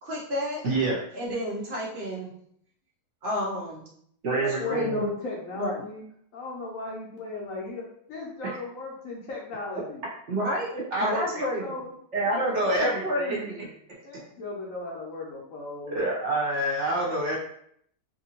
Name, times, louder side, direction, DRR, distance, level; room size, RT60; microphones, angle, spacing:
voice 1, 0.0-0.6 1.1-2.3 3.2-3.9 4.6-5.1 5.5-5.8 10.3-10.7 11.0-11.8 12.7-13.7, equal, 85° right, -4 dB, 0.4 m, -30 dB
voice 2, 0.6-1.0 4.2-5.0 8.4-8.5 10.7-11.2 12.1-13.4 15.9-17.4, right 1 dB, 50° right, -4 dB, 1.1 m, -27 dB
voice 3, 4.3-6.0 6.3-10.0 11.3-11.9 12.3-13.2 14.0-16.0, left 3 dB, 60° left, -2 dB, 1.0 m, -36 dB
2.8 x 2.6 x 2.8 m, 0.67 s
omnidirectional pair, 1.8 m